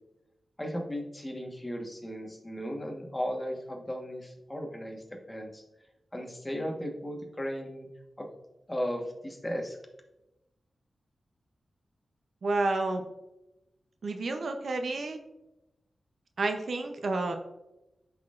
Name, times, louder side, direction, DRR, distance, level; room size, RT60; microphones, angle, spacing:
voice 1, 0.6-5.6 6.1-7.9 8.2-8.3 8.7-9.8, equal, 20° left, 1 dB, 1.3 m, -36 dB
voice 2, 12.4-13.0 14.0-15.2 16.4-17.4, right 2 dB, 70° right, 5 dB, 0.6 m, -30 dB
12.0 x 4.1 x 2.5 m, 0.95 s
cardioid pair, 70°, 0 cm